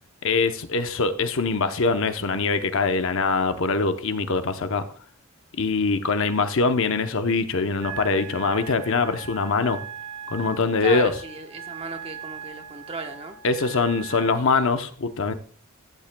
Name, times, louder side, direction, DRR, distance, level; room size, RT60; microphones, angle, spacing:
voice 1, 0.2-4.8 5.6-9.8 10.3-11.1 13.4-15.3, left 4 dB, 60° left, 9 dB, 0.8 m, -23 dB
Wind instrument woodwind instrument, 7.8-14.4, right 8 dB, 80° right, 1.7 m, -40 dB
voice 2, 10.8-13.4, right 3 dB, 25° right, 5 dB, 1.0 m, -35 dB
14.5 x 8.4 x 2.2 m, 0.42 s
head